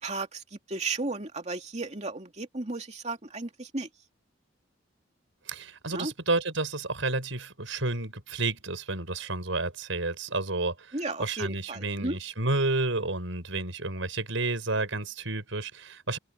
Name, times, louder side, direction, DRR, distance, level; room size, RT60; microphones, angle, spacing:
voice 1, 0.0-3.9 5.9-6.1 10.9-12.2, right 3 dB, 35° right, 2.6 m, -34 dB
voice 2, 5.5-16.2, right 2 dB, 80° right, 5.0 m, -31 dB
open air
head